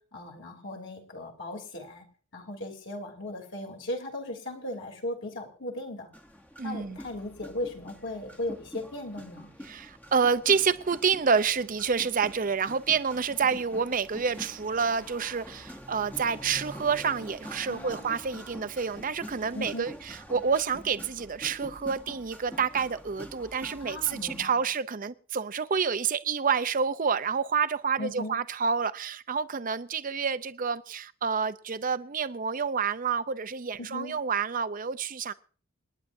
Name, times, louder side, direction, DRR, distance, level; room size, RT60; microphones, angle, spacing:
voice 1, 0.1-2.0 2.3-6.1 6.6-9.5 17.7-18.1 19.5-19.9 23.8-24.6 28.0-28.4 33.8-34.2, left 1 dB, 55° left, 3.2 m, -37 dB
sound 1, 6.1-24.5, equal, 5° left, 1.0 m, -46 dB
voice 2, 6.6-7.0 9.6-35.3, right 6 dB, 40° right, 0.5 m, -28 dB
28.0 x 10.0 x 2.7 m
head